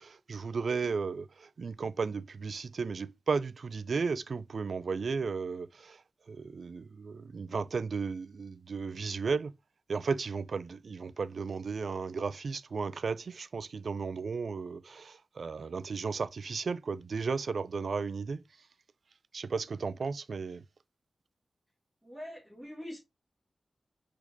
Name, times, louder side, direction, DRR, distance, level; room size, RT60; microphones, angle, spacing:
voice 1, 0.0-6.0 6.3-9.5 9.9-18.4 19.3-20.6, right 5 dB, 65° right, 0.3 m, -34 dB
voice 2, 22.0-23.0, left 1 dB, 5° right, 2.0 m, -43 dB
4.4 x 4.3 x 2.7 m
wide cardioid pair, 90°, 0 cm